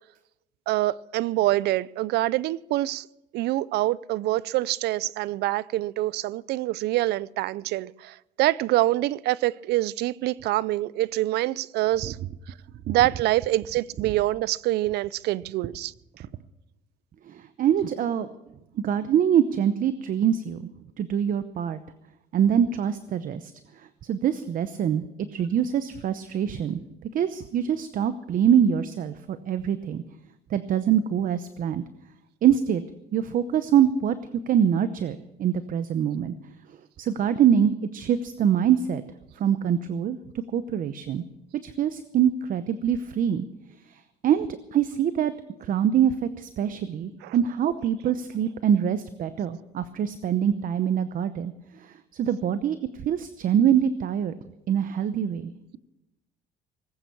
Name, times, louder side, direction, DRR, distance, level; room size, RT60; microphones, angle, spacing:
voice 1, 0.7-3.1 3.3-12.2 12.9-15.9 47.2-47.4, right 16 dB, 75° right, 0.5 m, -25 dB
voice 2, 17.3-18.3 18.8-20.6 21.0-21.8 22.3-25.0 25.3-26.8 27.1-30.0 30.5-31.8 32.4-32.8 33.1-34.2 34.5-36.3 37.0-39.0 39.4-40.2 40.5-41.2 41.6-43.5 43.8-44.5 44.7-45.3 45.6-54.4 54.7-55.8, right 9 dB, 55° right, 0.8 m, -24 dB
19.5 x 9.1 x 7.1 m
cardioid pair, 110°, 17 cm